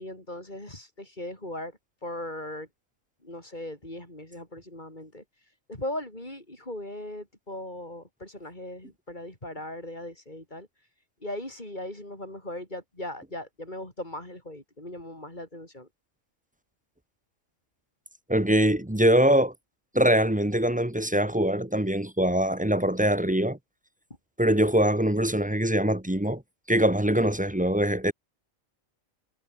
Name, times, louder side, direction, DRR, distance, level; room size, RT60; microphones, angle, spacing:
voice 1, 0.0-1.7 2.0-2.7 3.2-10.7 11.2-15.9, left 1 dB, 35° left, 6.5 m, -38 dB
voice 2, 18.3-19.5 19.9-23.6 24.4-26.4 26.7-28.1, right 1 dB, 5° right, 1.1 m, -23 dB
omnidirectional pair, 1.4 m